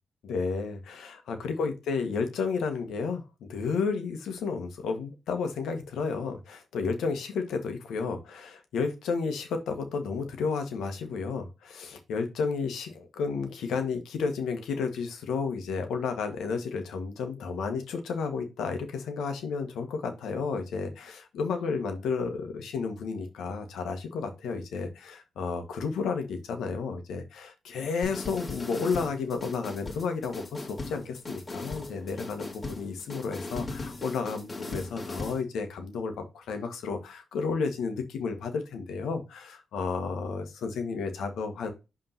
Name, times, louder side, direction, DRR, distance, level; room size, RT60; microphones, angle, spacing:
voice 1, 0.2-41.7, left 5 dB, 85° left, 6 dB, 1.5 m, -32 dB
sound 1, 28.0-35.4, left 2 dB, 40° left, 2.4 m, -38 dB
5.5 x 3.7 x 5.8 m, 0.26 s
supercardioid pair, 55°, 0 cm